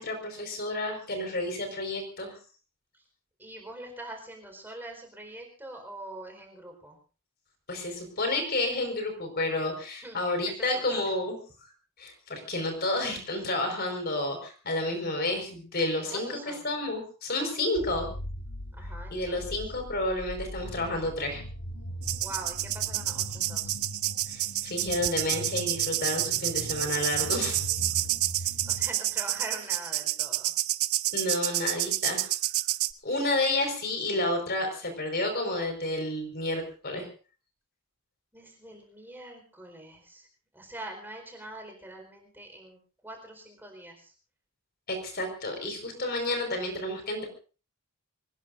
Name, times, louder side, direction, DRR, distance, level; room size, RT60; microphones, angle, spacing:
voice 1, 0.0-2.3 7.7-11.4 12.0-16.4 16.6-18.1 19.1-21.4 24.3-27.6 31.1-32.3 33.0-37.1 44.9-47.3, left 2 dB, 45° left, 5 dB, 5.0 m, -30 dB
voice 2, 3.4-7.0 10.0-11.1 16.0-16.7 18.7-19.6 22.2-23.8 28.4-30.5 38.3-40.3 40.5-44.1, right 1 dB, 10° right, 2 dB, 4.5 m, -44 dB
sound 1, 17.8-28.9, equal, 85° left, 1.4 m, -40 dB
sound 2, 22.0-32.9, right 15 dB, 75° right, 0.7 m, -29 dB
25.5 x 20.0 x 2.6 m, 0.37 s
head